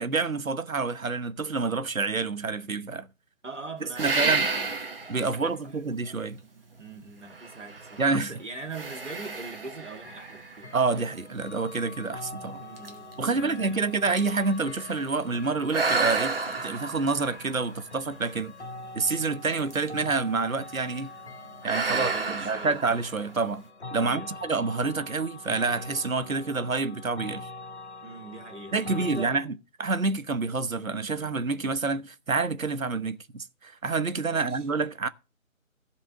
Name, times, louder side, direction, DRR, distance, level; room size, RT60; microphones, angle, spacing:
voice 1, 0.0-3.1 3.8-4.5 5.1-6.4 8.0-8.3 10.7-12.6 13.2-16.3 16.6-18.5 18.9-21.1 21.6-23.6 23.9-27.5 28.7-35.1, right 4 dB, 75° right, 1.1 m, -28 dB
voice 2, 3.4-4.7 5.2-5.8 6.8-10.7 12.6-13.9 21.7-22.8 24.0-24.4 28.0-29.4 34.3-34.6, right 3 dB, 60° right, 2.0 m, -42 dB
sound 1, 4.0-5.3 5.9-6.0 7.3-8.2 8.7-11.1 11.8-11.9 12.4-12.5 12.8-15.1 15.7-18.4 19.6-20.1 20.4-20.7 21.6-23.5, right 4 dB, 40° right, 1.5 m, -31 dB
sound 2, 10.0-29.3, left 3 dB, 55° left, 1.2 m, -44 dB
14.5 x 5.3 x 6.6 m
figure-of-eight pair, 160°, 41 cm